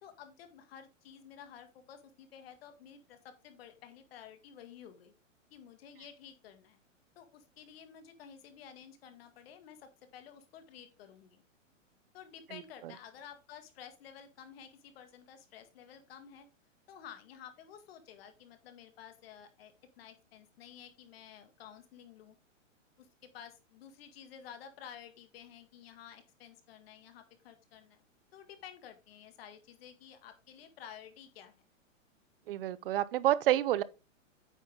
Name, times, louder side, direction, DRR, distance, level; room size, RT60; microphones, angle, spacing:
voice 1, 0.0-5.1 5.5-6.8 7.1-11.4 12.1-16.5 16.9-22.3 23.0-28.0 28.3-31.5, left 8 dB, 50° left, 1.8 m, -52 dB
voice 2, 32.5-33.8, right 13 dB, 45° right, 0.6 m, -28 dB
9.1 x 5.6 x 3.7 m
hypercardioid pair, 150°, 39 cm